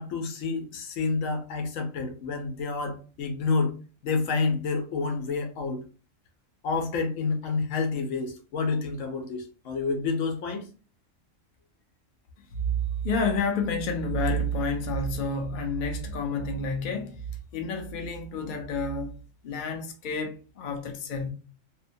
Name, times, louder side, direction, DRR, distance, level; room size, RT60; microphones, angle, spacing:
voice 1, 0.0-3.7 4.0-5.8 6.6-10.7, left 4 dB, 80° left, 1.1 m, -29 dB
voice 2, 12.4-19.2 19.4-21.3, left 1 dB, 55° left, 0.6 m, -29 dB
2.9 x 2.1 x 2.6 m
omnidirectional pair, 1.4 m